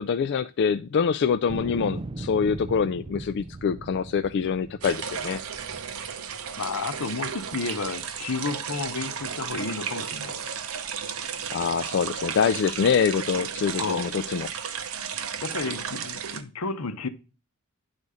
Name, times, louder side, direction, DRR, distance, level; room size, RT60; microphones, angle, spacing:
voice 1, 0.0-5.4 11.5-14.5, left 6 dB, 50° left, 0.3 m, -25 dB
sound 1, 1.5-6.7 7.3-8.0, right 2 dB, 25° right, 0.3 m, -39 dB
sound 2, 4.8-16.4, right 7 dB, 70° right, 0.8 m, -34 dB
voice 2, 6.6-10.5 13.8-14.1 15.4-17.1, left 4 dB, 80° left, 0.9 m, -32 dB
9.7 x 4.1 x 4.8 m
head